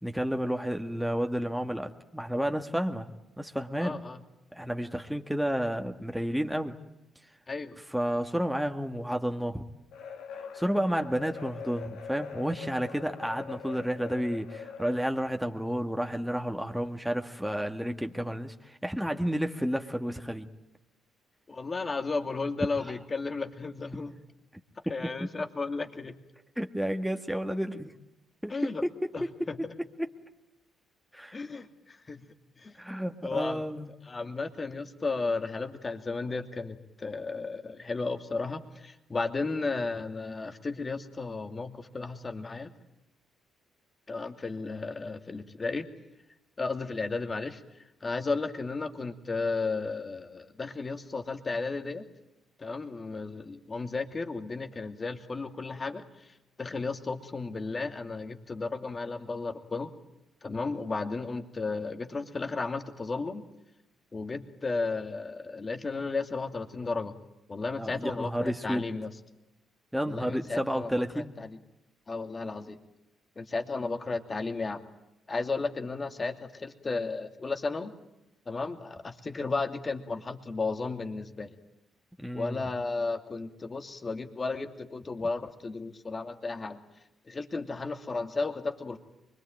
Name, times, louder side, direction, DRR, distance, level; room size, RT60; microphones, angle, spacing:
voice 1, 0.0-3.1 3.4-4.0 4.5-6.8 7.9-9.6 10.5-20.5 25.2-25.3 26.6-27.9 28.4-29.7 30.0-30.1 31.1-31.4 32.8-33.9 67.8-68.9 69.9-71.3 82.2-82.6, equal, 5° right, 4 dB, 1.9 m, -31 dB
voice 2, 3.8-4.2 7.5-7.7 21.5-24.1 24.9-26.1 28.5-28.8 29.1-29.6 31.3-32.2 32.6-32.7 33.2-33.6 34.0-42.7 44.1-45.9 46.6-47.6 48.0-52.0 52.6-56.0 56.6-59.9 60.4-63.4 64.1-67.1 67.5-69.1 70.0-71.6 72.1-72.8 73.4-74.8 75.3-77.9 78.5-81.5 82.3-86.8 87.3-89.0, left 3 dB, 35° left, 6 dB, 2.7 m, -34 dB
sound 1, 9.9-15.3, left 6 dB, 75° left, 2.5 m, -43 dB
24.5 x 22.0 x 9.1 m, 0.92 s
hypercardioid pair, 50°, 0 cm